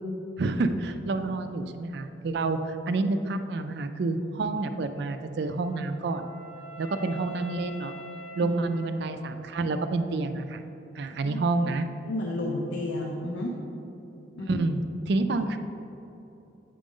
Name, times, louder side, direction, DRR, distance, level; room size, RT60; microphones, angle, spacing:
voice 1, 0.4-6.2 6.8-7.9 8.4-10.6 11.0-11.8 14.5-14.8 15.1-15.6, right 3 dB, 55° right, 8 dB, 0.4 m, -28 dB
Wind instrument woodwind instrument, 5.4-9.5, right 3 dB, 15° right, 0.9 m, -44 dB
voice 2, 12.1-13.5 14.4-14.7, left 1 dB, 70° left, -2 dB, 0.7 m, -32 dB
8.3 x 5.0 x 3.7 m, 2.9 s
head